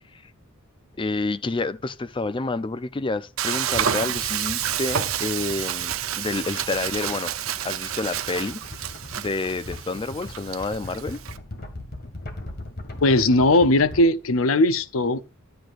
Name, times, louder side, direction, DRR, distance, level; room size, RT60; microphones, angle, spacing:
voice 1, 1.0-7.3 7.6-8.9 9.2-11.2, left 3 dB, 25° left, 0.5 m, -29 dB
Frying (food), 3.4-11.4, right 10 dB, 75° right, 0.7 m, -29 dB
sound 1, 3.7-14.0, left 1 dB, 50° left, 2.0 m, -40 dB
voice 2, 13.0-15.2, left 2 dB, 75° left, 0.7 m, -18 dB
12.0 x 7.9 x 2.5 m
head